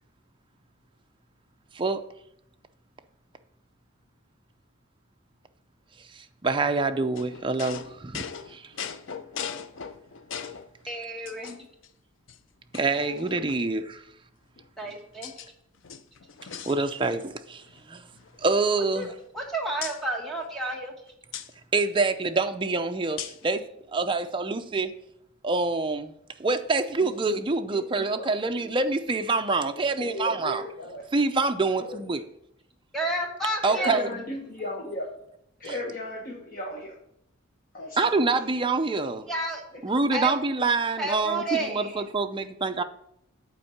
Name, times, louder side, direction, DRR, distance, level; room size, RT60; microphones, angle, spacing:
voice 1, 1.7-2.1 6.1-8.7 9.4-9.5 12.7-14.0 16.7-18.0 18.4-19.1 21.7-24.9 25.4-26.1 26.4-30.6 31.1-32.2 33.6-34.1 35.6-35.7 38.0-39.3 39.8-42.8, right 3 dB, 25° right, 6 dB, 0.5 m, -26 dB
sound 1, 7.1-10.7 11.3-11.9 12.3-12.4 12.7-13.8 14.6-15.5 15.8-17.3 17.6-17.8 18.1-19.4 19.8-20.0 21.3-21.5 23.2-23.5, left 7 dB, 60° left, 0.5 m, -39 dB
voice 2, 10.9-11.6 14.8-15.3 18.9-20.9 32.9-34.1 39.3-39.6 40.1-40.3 41.0-42.1, right 2 dB, ahead, 0 dB, 1.3 m, -31 dB
voice 3, 29.7-31.0 31.8-32.0 33.6-35.1 35.6-36.9 37.7-38.4 39.7-39.8 40.6-40.7, left 1 dB, 40° left, -1 dB, 1.2 m, -36 dB
8.3 x 4.4 x 7.1 m, 0.76 s
head